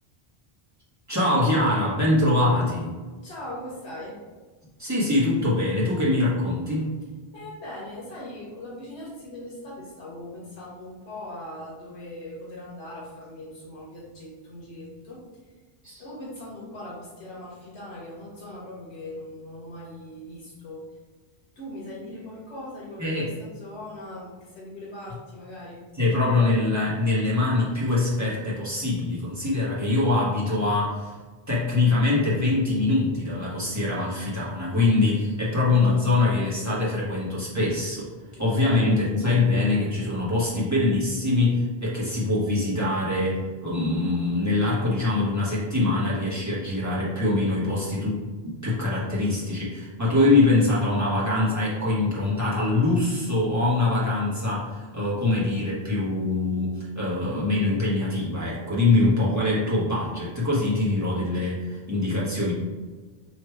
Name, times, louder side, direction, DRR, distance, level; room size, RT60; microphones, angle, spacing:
voice 1, 1.1-2.9 4.8-6.9 15.8-16.0 23.0-23.3 26.0-31.1 31.5-38.1 38.4-62.5, left 2 dB, 15° right, -8 dB, 1.3 m, -23 dB
voice 2, 3.2-4.2 7.3-15.6 15.8-21.0 21.6-25.8 38.3-39.0, left 1 dB, 85° left, -5 dB, 1.2 m, -40 dB
3.2 x 3.1 x 4.6 m, 1.4 s
omnidirectional pair, 1.1 m